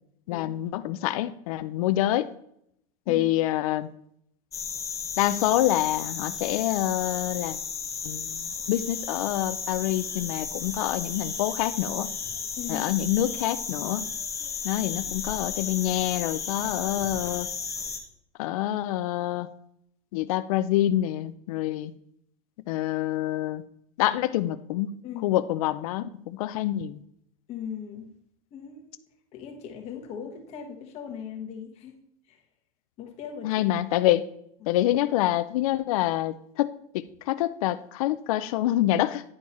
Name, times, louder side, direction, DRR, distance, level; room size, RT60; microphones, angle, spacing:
voice 1, 0.3-2.3 3.1-3.9 5.2-7.6 8.0-12.1 12.7-14.0 14.6-17.5 18.4-19.5 20.1-21.9 22.7-23.6 24.0-25.0 25.2-27.0 33.4-34.2 34.7-39.2, left 14 dB, 70° left, 12 dB, 0.5 m, -26 dB
sound 1, 4.5-18.0, left 5 dB, 15° left, 0.9 m, -34 dB
voice 2, 12.6-12.9 25.0-25.3 27.5-28.1 28.5-29.0 29.3-32.0 32.3-32.4 33.0-33.7 34.6-34.8, left 8 dB, 35° left, 3 dB, 1.3 m, -39 dB
9.8 x 4.6 x 4.2 m, 0.73 s
supercardioid pair, 155°, 19 cm